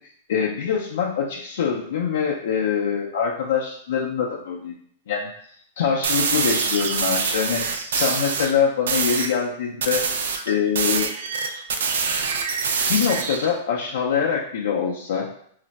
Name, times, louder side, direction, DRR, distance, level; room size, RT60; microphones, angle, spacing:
voice 1, 0.3-4.8 5.1-5.3 5.8-7.6 7.9-10.0 10.5-11.1 12.9-15.3, left 7 dB, 75° left, -3 dB, 0.5 m, -24 dB
sound 1, 6.0-8.5 8.9-9.3 9.8-13.5, right 5 dB, 90° right, 0.4 m, -25 dB
2.4 x 2.1 x 3.9 m, 0.64 s
supercardioid pair, 150°, 0 cm